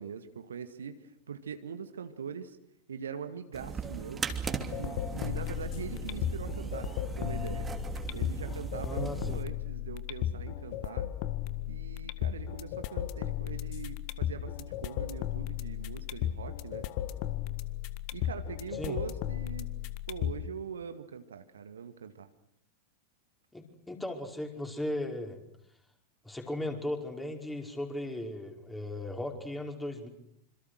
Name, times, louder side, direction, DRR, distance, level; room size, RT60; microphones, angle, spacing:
voice 1, 0.0-2.6 2.9-4.2 4.8-7.7 8.1-11.1 11.7-16.9 18.1-19.7 20.1-22.3, right 7 dB, 70° right, 9 dB, 2.0 m, -42 dB
sound 1, 3.5-9.4, right 5 dB, 15° right, 2.9 m, -38 dB
sound 2, 4.5-20.5, left 12 dB, 45° left, 1.6 m, -35 dB
voice 2, 8.8-9.4 18.8-19.0 23.5-25.4 26.2-30.1, left 1 dB, 5° left, 3 dB, 5.2 m, -37 dB
27.5 x 27.0 x 6.5 m, 0.76 s
figure-of-eight pair, 90°, 0 cm